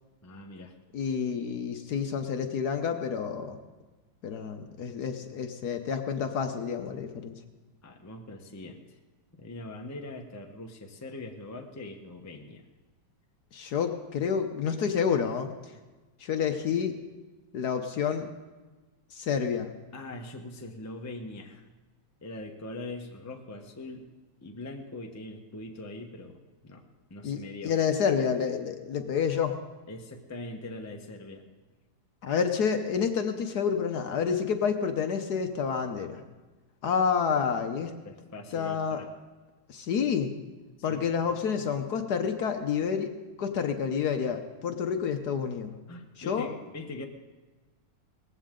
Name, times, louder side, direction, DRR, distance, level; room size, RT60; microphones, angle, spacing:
voice 1, 0.2-0.7 7.8-9.0 9.4-12.7 19.9-21.7 22.2-24.1 24.4-26.8 27.1-27.8 29.9-31.5 38.0-39.1 40.9-41.3 45.9-47.0, left 2 dB, 15° left, 3 dB, 0.7 m, -42 dB
voice 2, 0.9-3.6 4.2-7.4 13.5-15.5 16.2-17.0 17.5-18.3 19.1-19.7 27.2-29.6 32.2-36.2 36.8-37.9 38.5-39.0 39.7-40.3 40.8-45.7 46.3-46.5, left 6 dB, 60° left, 6 dB, 1.3 m, -29 dB
19.0 x 15.0 x 3.8 m, 1.3 s
omnidirectional pair, 2.2 m